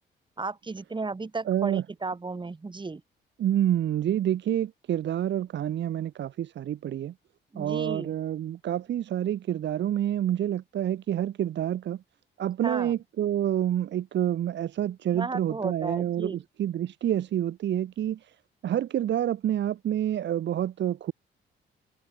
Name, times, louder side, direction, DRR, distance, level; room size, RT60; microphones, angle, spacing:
voice 1, 0.4-3.0 7.5-8.1 12.6-12.9 15.1-16.4, right 3 dB, 25° right, 3.4 m, -34 dB
voice 2, 1.4-1.8 3.4-7.1 7.5-12.0 12.4-18.3 18.6-21.1, right 11 dB, 65° right, 1.3 m, -28 dB
open air
cardioid pair, 90°, 20 cm